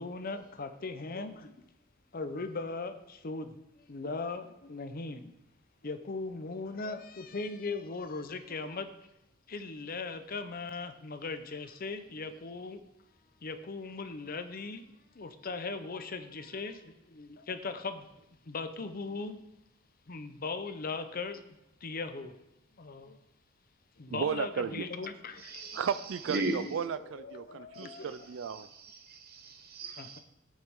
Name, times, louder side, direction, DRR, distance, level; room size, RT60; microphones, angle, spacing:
voice 1, 0.0-1.5 2.1-5.3 5.8-8.9 9.5-12.8 13.4-14.8 15.1-18.1 18.4-19.4 20.1-22.4 22.8-23.2 24.0-25.8 26.9-28.2 30.0-30.2, left 3 dB, 50° left, 9 dB, 0.7 m, -39 dB
voice 2, 24.1-24.9 25.7-28.7, right 7 dB, 70° right, 14 dB, 0.4 m, -34 dB
voice 3, 25.4-25.9 26.3-26.6 27.7-28.0 28.5-30.2, right 2 dB, 50° right, 4 dB, 1.3 m, -37 dB
11.5 x 8.8 x 3.6 m, 0.94 s
head